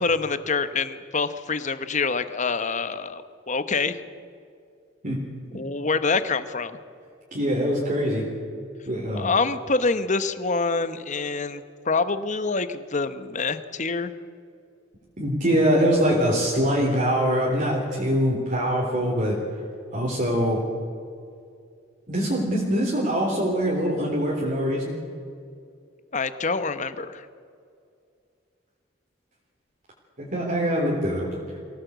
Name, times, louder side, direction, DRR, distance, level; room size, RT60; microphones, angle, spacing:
voice 1, 0.0-4.0 5.5-6.8 9.1-14.1 26.1-27.3, left 4 dB, 40° left, 12 dB, 1.0 m, -26 dB
voice 2, 7.3-8.2 8.9-9.3 15.2-19.4 19.9-20.6 22.1-25.0 30.2-31.3, equal, 45° right, -4 dB, 3.5 m, -23 dB
23.5 x 17.0 x 8.1 m, 2.4 s
head